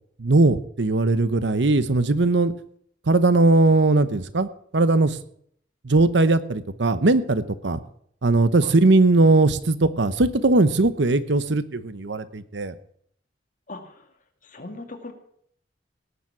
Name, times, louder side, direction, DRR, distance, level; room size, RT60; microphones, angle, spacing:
voice 1, 0.2-2.5 3.1-4.5 4.7-5.2 5.8-7.8 8.2-12.7, right 2 dB, 70° right, 13 dB, 0.9 m, -19 dB
voice 2, 13.7-14.1 14.4-15.1, left 2 dB, 45° left, 4 dB, 2.0 m, -39 dB
18.0 x 7.1 x 6.0 m, 0.64 s
head